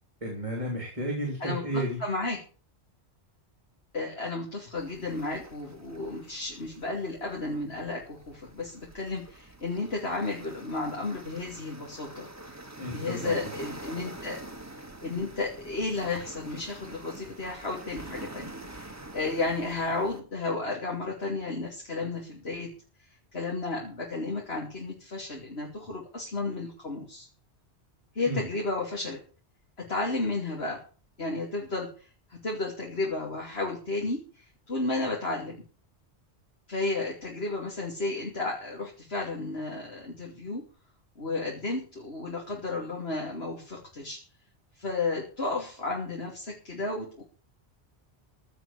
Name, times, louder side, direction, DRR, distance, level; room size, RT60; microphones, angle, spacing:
voice 1, 0.2-2.0 12.8-13.4 28.3-28.4, right 1 dB, 30° right, 1 dB, 3.4 m, -32 dB
voice 2, 1.4-2.4 3.9-12.3 12.9-14.4 15.0-22.7 23.3-27.3 28.1-29.2 29.8-30.8 31.2-35.6 36.7-40.6 41.2-44.2 44.8-47.2, left 3 dB, 65° left, -2 dB, 3.2 m, -33 dB
sound 1, 4.8-20.2, right 2 dB, 15° right, 1.5 m, -46 dB
15.5 x 5.8 x 8.3 m, 0.39 s
omnidirectional pair, 1.1 m